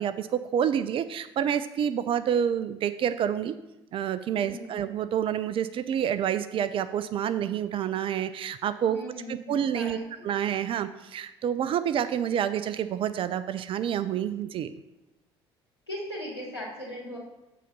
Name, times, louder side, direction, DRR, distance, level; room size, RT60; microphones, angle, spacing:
voice 1, 0.0-3.5 3.9-9.0 9.3-10.0 10.2-14.7, right 9 dB, 40° right, 12 dB, 0.4 m, -28 dB
voice 2, 4.3-4.8 8.9-10.0 15.9-17.2, equal, 85° left, -8 dB, 2.5 m, -38 dB
7.5 x 3.9 x 6.7 m, 0.95 s
figure-of-eight pair, 55°, 13 cm